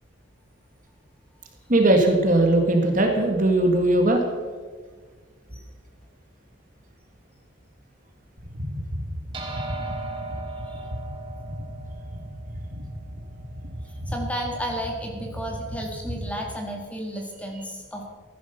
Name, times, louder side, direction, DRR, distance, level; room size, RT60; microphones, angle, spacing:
voice 1, 1.7-4.2, right 1 dB, 40° right, 3 dB, 1.7 m, -19 dB
sound 1, 8.4-16.5, equal, 65° right, 2.1 m, -35 dB
sound 2, 9.3-14.0, right 3 dB, 25° right, 2.1 m, -38 dB
voice 2, 10.5-10.9 13.9-18.0, equal, 5° left, 1 dB, 1.9 m, -33 dB
15.0 x 10.5 x 5.7 m, 1.5 s
head